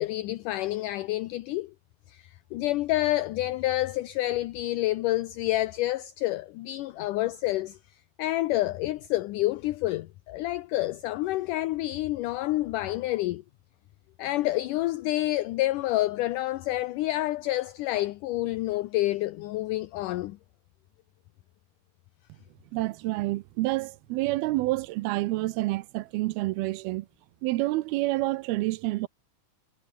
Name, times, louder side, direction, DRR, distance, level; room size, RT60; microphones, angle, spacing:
voice 1, 0.0-1.7 2.1-7.8 8.2-13.4 14.2-20.4, left 16 dB, 75° left, 2.0 m, -28 dB
voice 2, 22.7-27.1 27.4-29.1, right 19 dB, 80° right, 2.6 m, -28 dB
omnidirectional pair, 4.4 m